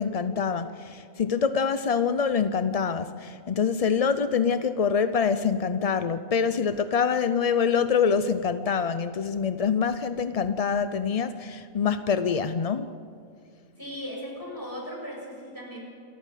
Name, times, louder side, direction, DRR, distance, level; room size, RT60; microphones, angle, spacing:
voice 1, 0.0-12.9, left 6 dB, 50° left, 11 dB, 0.4 m, -25 dB
voice 2, 13.8-15.8, equal, 15° left, -2 dB, 6.5 m, -37 dB
28.0 x 14.0 x 9.2 m, 2.4 s
omnidirectional pair, 1.4 m